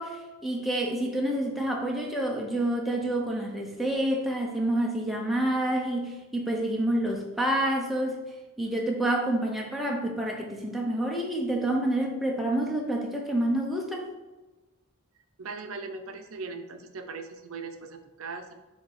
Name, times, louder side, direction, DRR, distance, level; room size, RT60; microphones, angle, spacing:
voice 1, 0.0-8.2 8.6-14.1, right 1 dB, ahead, -1 dB, 0.7 m, -28 dB
voice 2, 15.4-18.5, right 4 dB, 75° right, 6 dB, 0.6 m, -39 dB
7.2 x 2.8 x 4.7 m, 1.1 s
head